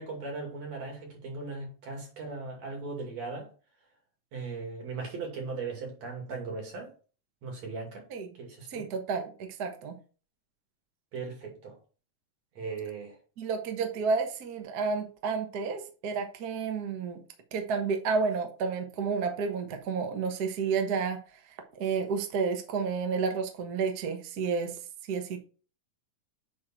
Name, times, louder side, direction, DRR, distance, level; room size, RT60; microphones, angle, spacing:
voice 1, 0.0-3.5 4.3-6.9 7.4-8.1 8.4-8.9 11.1-11.8 12.6-13.2, right 4 dB, 60° right, 3.6 m, -38 dB
voice 2, 8.7-9.9 13.4-17.2 17.5-21.2 21.7-24.8 25.1-25.4, right 5 dB, 75° right, 0.9 m, -31 dB
9.5 x 3.8 x 4.4 m
omnidirectional pair, 3.6 m